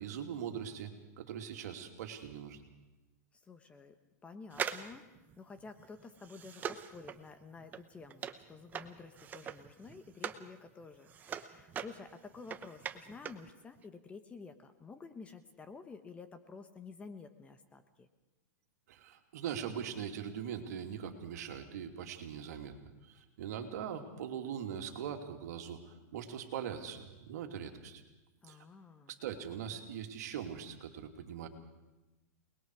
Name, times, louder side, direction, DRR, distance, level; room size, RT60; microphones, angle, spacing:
voice 1, 0.0-2.6 18.9-28.0 28.5-28.6 29.1-31.5, right 8 dB, 65° right, 4 dB, 2.8 m, -41 dB
voice 2, 3.3-3.9 4.2-5.1 5.4-18.1 28.4-29.2, left 4 dB, 15° left, 9 dB, 1.0 m, -51 dB
sound 1, 4.5-10.5 10.8-13.5 13.8-13.9, right 8 dB, 20° right, 0.9 m, -42 dB
28.5 x 20.5 x 4.8 m, 1.1 s
supercardioid pair, 150°, 9 cm